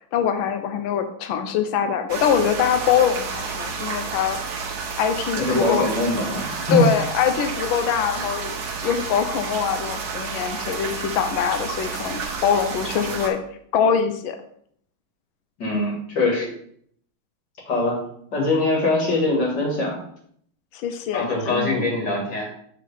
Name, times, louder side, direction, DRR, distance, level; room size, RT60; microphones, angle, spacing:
voice 1, 0.1-4.4 5.0-5.9 6.7-8.5 8.8-13.4 13.7-14.4 20.7-22.0, left 8 dB, 80° left, 7 dB, 1.4 m, -23 dB
sound 1, 2.1-13.3, right 5 dB, 60° right, 1.2 m, -30 dB
voice 2, 5.4-6.9 15.6-16.5 17.7-18.0 18.3-20.0 21.1-22.5, left 2 dB, 60° left, -2 dB, 2.4 m, -23 dB
7.3 x 4.4 x 3.4 m, 0.64 s
omnidirectional pair, 2.2 m